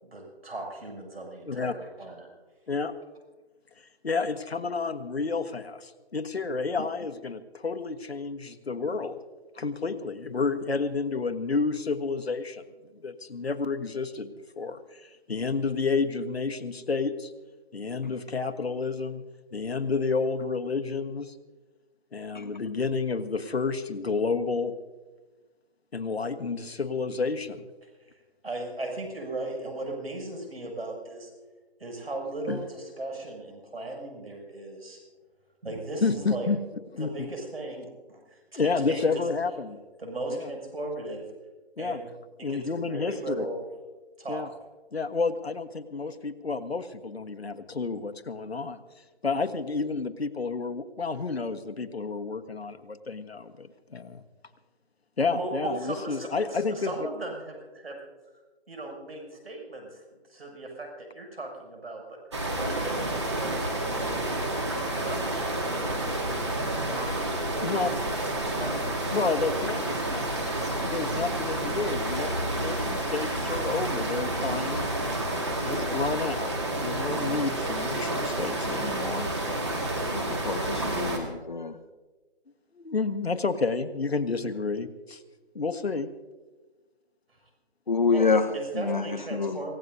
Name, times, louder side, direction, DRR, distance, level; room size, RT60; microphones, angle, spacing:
voice 1, 0.0-2.3 27.8-28.2 28.4-31.3 31.8-35.0 35.6-36.5 37.0-39.2 40.0-41.3 41.8-42.1 42.4-43.7 44.2-44.5 55.3-58.0 58.7-63.6 64.2-64.4 64.7-69.2 87.3-87.4 88.1-89.8, right 2 dB, 70° right, 1 dB, 7.0 m, -37 dB
voice 2, 3.8-9.2 9.5-12.6 13.0-17.3 17.7-19.2 19.5-21.3 22.1-24.7 25.9-27.7 32.5-32.6 36.0-36.6 36.9-37.3 38.6-39.8 40.3-40.5 41.8-42.0 42.4-43.4 44.3-44.5 44.9-48.8 49.2-54.2 55.2-57.1 67.6-67.9 69.1-70.4 70.8-72.3 72.6-74.9 75.6-76.5 76.8-79.3 82.7-85.2 85.5-86.1, left 4 dB, 70° left, 9 dB, 1.4 m, -30 dB
sound 1, 62.3-81.2, right 1 dB, 25° right, 2.0 m, -29 dB
voice 3, 80.1-81.7 87.9-88.4 88.8-89.0 89.3-89.6, left 4 dB, 45° left, 8 dB, 1.1 m, -26 dB
27.0 x 16.5 x 2.7 m, 1.2 s
hypercardioid pair, 175°, 32 cm